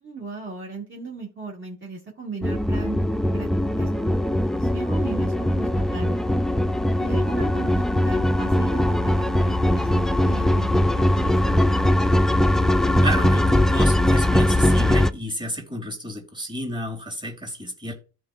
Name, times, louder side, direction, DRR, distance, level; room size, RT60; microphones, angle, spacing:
voice 1, 0.0-3.0 3.3-3.5 3.8-6.2 7.0-11.6, right 4 dB, 40° right, -3 dB, 2.5 m, -37 dB
sound 1, 2.4-15.1, left 1 dB, ahead, 0.3 m, -20 dB
voice 2, 13.0-17.9, equal, 15° right, 3 dB, 3.3 m, -31 dB
13.5 x 4.9 x 2.6 m, 0.35 s
cardioid pair, 90°, 30 cm